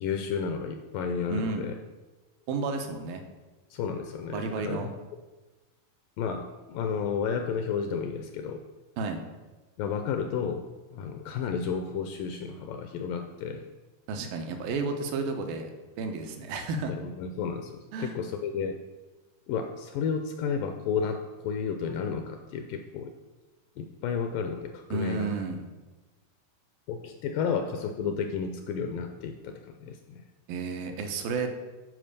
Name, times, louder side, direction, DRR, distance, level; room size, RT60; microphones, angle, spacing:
voice 1, 0.0-1.8 3.7-4.8 6.2-8.6 9.8-10.7 10.9-13.6 16.9-18.8 19.5-23.1 23.8-25.3 26.9-30.2, left 6 dB, 80° left, 6 dB, 2.0 m, -32 dB
voice 2, 1.3-1.7 2.5-3.2 4.3-4.9 9.0-9.2 14.1-15.7 16.0-16.9 17.9-18.2 24.9-25.6 30.5-31.5, right 4 dB, 75° right, 5 dB, 2.6 m, -31 dB
11.0 x 4.8 x 6.6 m, 1.2 s
omnidirectional pair, 4.4 m